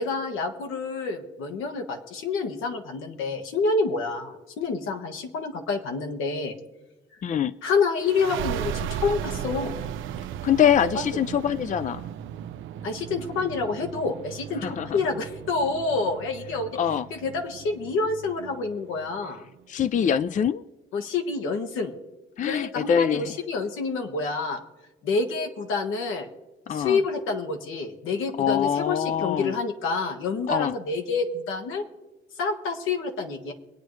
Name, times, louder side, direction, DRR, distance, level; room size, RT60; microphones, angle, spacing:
voice 1, 0.0-6.6 7.6-9.7 10.9-11.1 12.8-16.7 17.1-19.4 20.9-21.9 22.4-24.6 25.0-26.3 26.7-31.8 32.4-33.5, left 4 dB, 90° left, 4 dB, 1.6 m, -28 dB
voice 2, 7.2-7.5 10.4-12.0 14.6-15.0 16.8-17.1 19.7-20.6 22.4-23.4 26.7-27.0 28.4-29.5 30.5-30.7, left 8 dB, 40° left, 15 dB, 0.4 m, -24 dB
sound 1, 8.0-19.3, right 10 dB, 80° right, 0.6 m, -36 dB
23.5 x 9.1 x 3.2 m, 1.1 s
cardioid pair, 90°, 20 cm